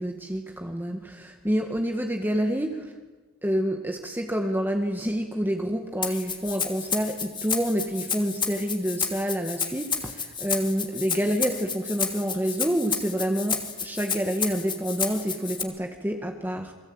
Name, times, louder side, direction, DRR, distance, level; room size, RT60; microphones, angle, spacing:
voice 1, 0.0-2.9 3.4-16.7, equal, 10° right, 3 dB, 1.8 m, -28 dB
Rattle (instrument), 6.0-15.6, left 6 dB, 25° left, 2.8 m, -31 dB
29.0 x 23.0 x 8.9 m, 1.3 s
head